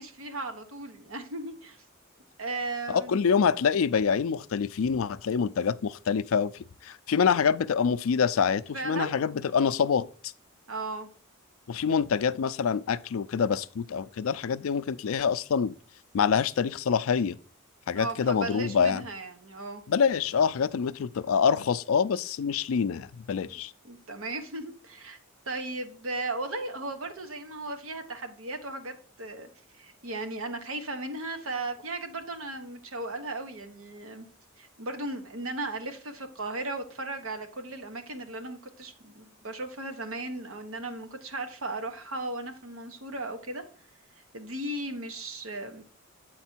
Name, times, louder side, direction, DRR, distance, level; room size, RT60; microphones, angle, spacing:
voice 1, 0.0-1.8 2.4-3.2 8.7-9.1 10.7-11.1 17.9-19.8 23.8-25.2 25.5-29.5 29.8-34.3 34.6-43.6 44.3-45.8, right 2 dB, 70° right, 1.2 m, -36 dB
voice 2, 2.9-10.3 11.7-15.7 16.1-17.4 17.9-19.0 19.9-23.7, left 6 dB, 70° left, 0.4 m, -26 dB
8.2 x 4.3 x 4.4 m
head